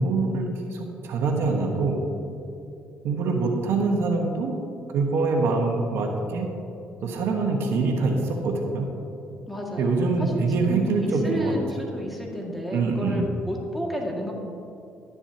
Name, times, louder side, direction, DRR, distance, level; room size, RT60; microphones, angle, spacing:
voice 1, 0.0-2.0 3.0-4.5 4.9-6.5 7.0-8.9 9.8-11.5 12.7-13.2, right 3 dB, 70° right, 2 dB, 1.4 m, -24 dB
voice 2, 9.5-14.3, equal, ahead, -2 dB, 2.1 m, -31 dB
12.0 x 11.0 x 2.9 m, 2.7 s
cardioid pair, 90°, 4 cm